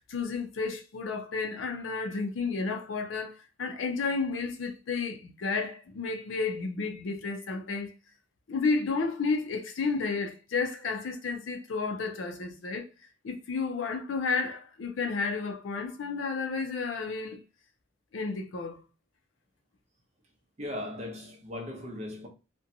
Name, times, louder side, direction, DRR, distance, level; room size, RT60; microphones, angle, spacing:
voice 1, 0.0-7.9 8.5-12.9 13.2-17.4 18.1-18.8, left 4 dB, 70° left, 0.5 m, -32 dB
voice 2, 20.6-22.3, left 1 dB, 35° right, 0.6 m, -38 dB
2.6 x 2.2 x 2.6 m
head